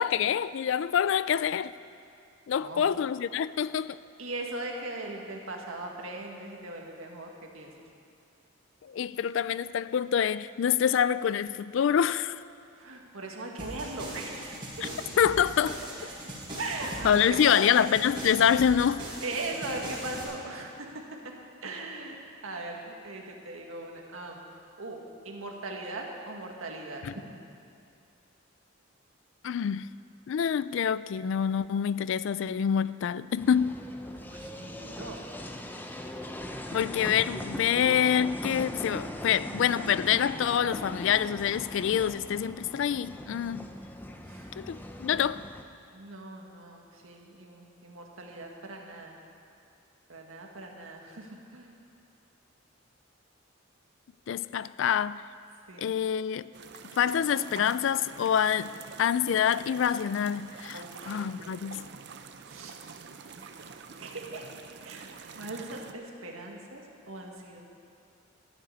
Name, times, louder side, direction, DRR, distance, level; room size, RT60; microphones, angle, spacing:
voice 1, 0.0-1.7 2.5-4.0 8.8-12.4 14.8-14.9 15.2-15.8 17.0-19.0 27.0-27.1 29.4-29.9 30.3-33.8 36.7-43.6 44.6-45.4 54.3-55.2 55.8-56.5 57.0-58.7 59.0-61.9, left 8 dB, 65° left, 0.3 m, -26 dB
voice 2, 2.6-2.9 4.2-7.9 12.8-14.9 16.6-17.8 19.2-20.9 21.2-21.3 21.6-22.2 22.4-24.4 24.8-27.0 34.2-35.2 44.2-44.5 45.9-49.2 50.1-51.7 55.7-55.9 60.7-61.4 62.4-62.8 63.4-63.5 64.0-64.4 64.8-65.1 65.3-67.6, right 2 dB, 80° right, 1.7 m, -39 dB
sound 1, 13.6-20.2, right 1 dB, 25° right, 4.0 m, -40 dB
sound 2, 33.4-45.6, left 1 dB, 10° left, 0.5 m, -40 dB
sound 3, 56.5-65.9, right 5 dB, 55° right, 0.6 m, -47 dB
12.5 x 6.7 x 9.7 m
head